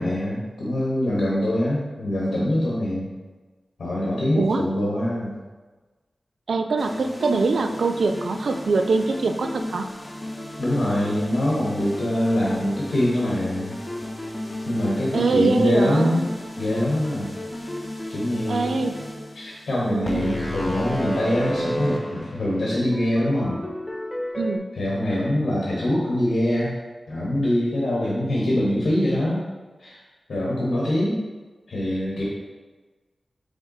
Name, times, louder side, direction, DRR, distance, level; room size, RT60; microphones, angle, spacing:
voice 1, 0.0-3.1 3.8-5.3 10.6-13.7 14.7-16.3 16.6-17.3 18.1-18.8 19.3-23.6 24.8-26.8 27.1-29.4 29.8-30.0 30.3-31.2 31.7-32.2, left 1 dB, 90° left, -6 dB, 1.0 m, -24 dB
voice 2, 6.5-9.8 15.1-16.2 18.5-19.0 19.9-20.4 24.4-24.6, right 3 dB, 85° right, 6 dB, 0.3 m, -23 dB
sound 1, 6.8-24.6, equal, 25° left, 0.6 m, -33 dB
3.6 x 3.5 x 3.9 m, 1.3 s
wide cardioid pair, 80°, 0 cm